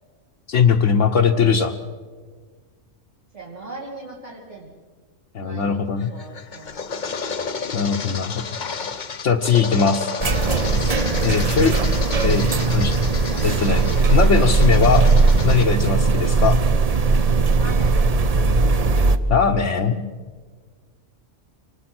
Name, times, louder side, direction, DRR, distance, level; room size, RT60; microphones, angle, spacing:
voice 1, 0.5-1.8 5.3-6.1 7.7-8.4 9.2-10.1 11.2-11.8 12.2-13.0 13.4-15.1 15.4-16.6 19.3-20.1, left 6 dB, 70° left, 1 dB, 1.3 m, -20 dB
voice 2, 3.3-4.7 5.4-5.8 6.1-7.0 17.6-18.0, right 2 dB, 65° right, -4 dB, 2.9 m, -39 dB
sound 1, 6.0-15.7, left 5 dB, 40° left, 0.9 m, -32 dB
sound 2, 10.2-19.2, right 3 dB, 35° right, 0.7 m, -18 dB
25.5 x 19.5 x 6.1 m, 1.5 s
omnidirectional pair, 1.3 m